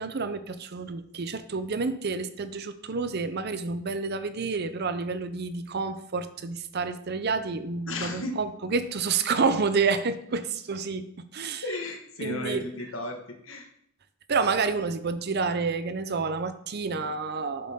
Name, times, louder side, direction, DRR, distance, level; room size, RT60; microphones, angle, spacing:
voice 1, 0.0-11.6 12.2-12.7 14.3-17.7, right 4 dB, 55° right, 12 dB, 0.6 m, -29 dB
voice 2, 7.9-8.3 11.6-13.7, left 2 dB, 75° left, 3 dB, 1.6 m, -34 dB
8.0 x 7.7 x 3.7 m, 0.70 s
head